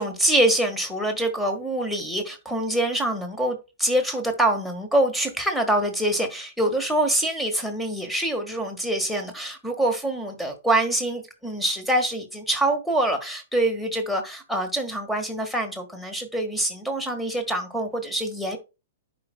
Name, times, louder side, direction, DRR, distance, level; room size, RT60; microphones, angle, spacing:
voice 1, 0.0-18.6, right 1 dB, ahead, 1.5 m, -25 dB
10.5 x 5.2 x 2.2 m
figure-of-eight pair, 110°, 0 cm